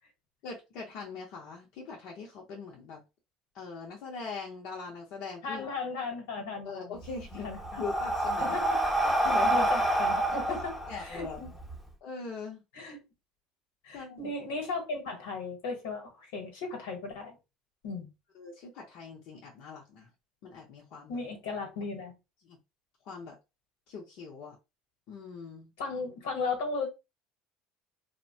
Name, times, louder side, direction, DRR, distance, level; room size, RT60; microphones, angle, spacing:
voice 1, 0.4-3.0 3.5-5.6 6.6-7.5 7.8-8.6 9.0-9.5 10.4-10.6 10.9-11.6 12.0-12.6 13.9-14.3 18.3-20.1 20.4-21.2 22.4-22.6 23.0-23.4 23.9-24.6 25.1-25.7, left 4 dB, 65° left, 0.7 m, -41 dB
voice 2, 5.4-7.0 7.4-7.8 8.4-8.9 9.5-11.5 12.7-13.0 13.8-17.4 17.8-18.1 21.1-22.1 25.8-26.9, left 4 dB, 85° left, 1.1 m, -36 dB
Breathing, 7.0-11.8, right 1 dB, ahead, 0.8 m, -28 dB
2.7 x 2.1 x 2.7 m
supercardioid pair, 85°, 0 cm